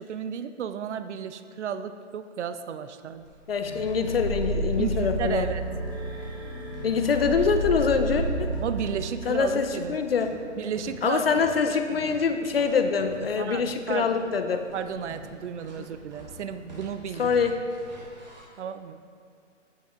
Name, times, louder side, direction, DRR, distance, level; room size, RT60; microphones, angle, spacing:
voice 1, 0.0-3.2 4.8-5.7 8.6-10.0 10.6-11.2 11.7-11.8 13.4-14.1 14.7-17.3 18.6-19.0, right 8 dB, 65° right, 11 dB, 0.5 m, -33 dB
sound 1, 3.0-18.4, equal, 35° right, 1.5 m, -48 dB
voice 2, 3.5-5.5 6.8-8.5 9.2-10.3 11.0-14.6 15.8-15.9 17.2-17.6, left 5 dB, 50° left, 7 dB, 0.6 m, -24 dB
sound 2, 3.6-10.3, right 1 dB, 20° right, 0.7 m, -31 dB
8.7 x 5.8 x 4.4 m, 2.3 s
hypercardioid pair, 175°, 37 cm